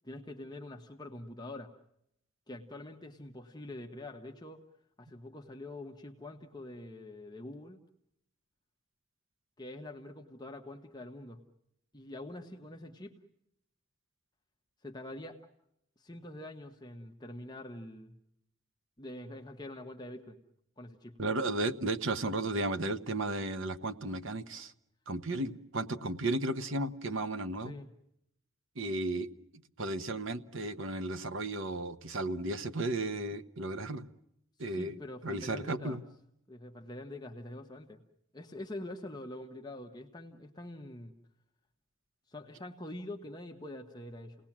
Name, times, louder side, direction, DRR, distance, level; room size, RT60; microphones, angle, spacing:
voice 1, 0.0-1.7 2.5-4.6 5.0-7.8 9.6-11.4 11.9-13.1 14.8-15.4 16.0-18.1 19.0-20.4 20.8-21.1 27.6-27.9 34.6-36.0 36.5-38.0 38.3-41.1 42.3-44.4, left 1 dB, 20° left, 3 dB, 1.3 m, -45 dB
voice 2, 21.2-24.7 25.1-27.7 28.8-29.3 29.8-34.1 34.6-34.9 35.2-36.0, right 2 dB, 60° right, 10 dB, 1.1 m, -34 dB
30.0 x 19.0 x 7.4 m, 0.78 s
head